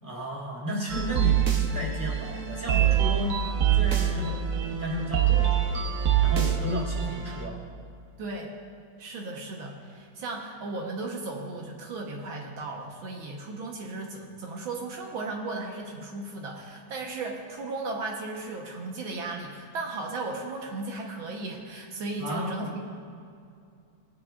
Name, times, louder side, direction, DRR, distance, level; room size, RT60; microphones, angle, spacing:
voice 1, 0.0-7.6 22.2-22.8, equal, 10° right, -6 dB, 3.0 m, -34 dB
sound 1, 0.9-7.4, right 9 dB, 55° right, 1.0 m, -25 dB
voice 2, 8.2-8.5 9.0-22.8, right 3 dB, 80° right, 0 dB, 1.9 m, -36 dB
19.0 x 10.0 x 2.4 m, 2.4 s
omnidirectional pair, 2.1 m